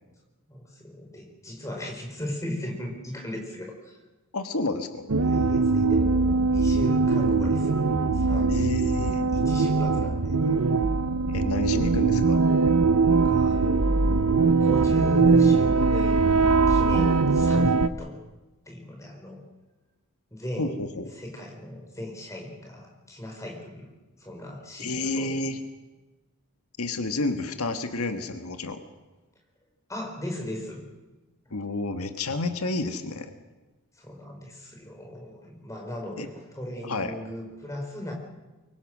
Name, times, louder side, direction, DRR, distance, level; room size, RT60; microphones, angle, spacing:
voice 1, 0.5-4.0 5.2-7.9 8.1-8.9 9.3-10.4 13.2-16.3 16.7-18.2 18.7-19.4 20.3-20.8 21.1-23.9 24.2-25.4 29.9-30.8 33.9-38.1, left 1 dB, 15° left, 1 dB, 4.9 m, -37 dB
voice 2, 4.3-5.1 8.5-9.3 11.3-12.4 20.6-21.1 24.8-25.6 26.8-28.8 31.5-33.3 36.2-36.3 36.8-37.2, left 2 dB, 80° left, 7 dB, 1.5 m, -30 dB
sound 1, 5.1-17.9, right 4 dB, 85° right, 0.9 m, -21 dB
24.0 x 23.0 x 6.3 m, 1.1 s
head